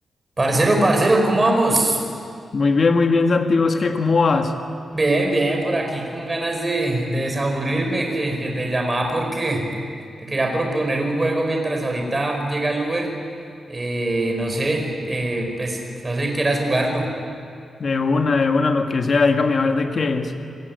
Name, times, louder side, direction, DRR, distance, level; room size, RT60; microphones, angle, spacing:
voice 1, 0.4-2.0 4.9-9.6 10.2-13.1 13.7-17.1, right 2 dB, 20° right, 2 dB, 5.2 m, -22 dB
voice 2, 2.5-4.5 17.8-20.3, left 4 dB, 40° left, 5 dB, 1.8 m, -19 dB
28.5 x 21.5 x 9.6 m, 2.4 s
wide cardioid pair, 160°, 0 cm